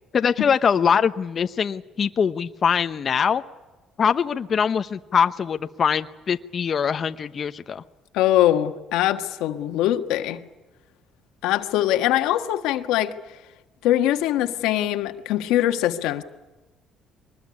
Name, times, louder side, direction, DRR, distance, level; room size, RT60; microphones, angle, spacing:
voice 1, 0.1-3.4 4.0-7.8, left 7 dB, 45° left, 9 dB, 0.9 m, -23 dB
voice 2, 8.1-10.4 11.4-13.1 13.8-16.2, left 13 dB, 90° left, 7 dB, 1.5 m, -22 dB
23.5 x 20.5 x 9.7 m, 1.2 s
cardioid pair, 100°, 0 cm